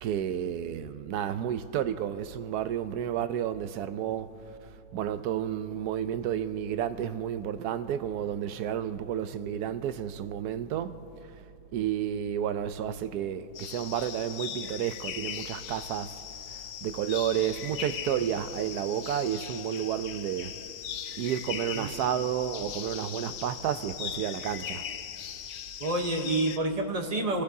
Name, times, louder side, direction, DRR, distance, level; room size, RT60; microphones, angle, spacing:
voice 1, 0.0-4.3 4.9-11.1 11.7-16.2 16.5-20.5 21.2-24.8, right 10 dB, 80° right, 1.1 m, -31 dB
sound 1, 13.6-26.6, left 9 dB, 65° left, 0.9 m, -39 dB
voice 2, 21.7-22.2 25.8-27.4, right 2 dB, 30° right, 0.9 m, -29 dB
29.5 x 15.0 x 2.7 m
omnidirectional pair, 1.7 m